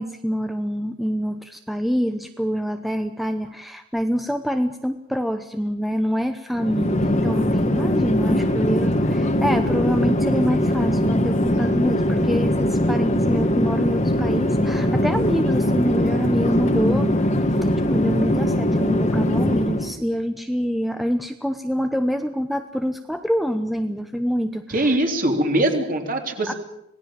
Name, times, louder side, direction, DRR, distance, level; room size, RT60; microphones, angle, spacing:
voice 1, 0.0-17.3 17.9-25.0 26.5-26.6, equal, ahead, 7 dB, 0.8 m, -26 dB
Chatter / Fixed-wing aircraft airplane, 6.5-19.9, left 1 dB, 35° left, 1.8 m, -21 dB
voice 2, 24.7-26.5, right 1 dB, 40° right, 3 dB, 3.4 m, -22 dB
26.5 x 18.5 x 7.4 m, 0.80 s
head